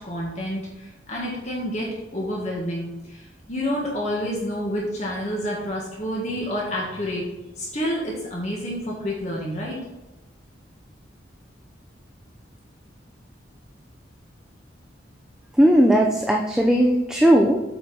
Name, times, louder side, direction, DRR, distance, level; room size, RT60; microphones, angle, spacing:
voice 1, 0.0-1.9 2.1-3.2 3.5-7.3 7.6-9.8, equal, 35° left, -4 dB, 1.8 m, -28 dB
voice 2, 15.6-17.6, equal, 5° right, 0 dB, 0.5 m, -17 dB
8.2 x 5.0 x 5.9 m, 1.0 s
head